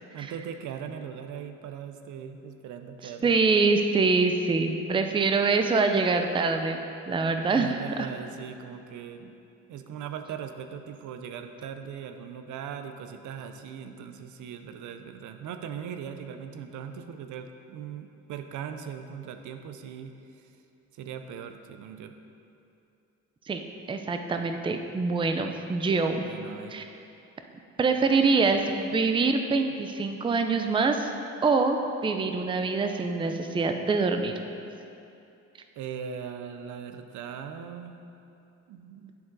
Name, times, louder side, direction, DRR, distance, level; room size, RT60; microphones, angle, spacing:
voice 1, 0.1-3.4 7.5-9.4 9.7-20.5 20.9-22.2 26.1-26.8 35.8-38.0 38.7-39.1, right 7 dB, 75° right, 7 dB, 0.5 m, -39 dB
voice 2, 3.2-8.1 23.5-23.6 23.9-26.2 26.7-26.8 27.8-31.1 31.4-31.8 32.0-34.3, right 4 dB, 15° right, 6 dB, 0.4 m, -25 dB
10.0 x 3.8 x 3.9 m, 2.7 s
cardioid pair, 90°, 30 cm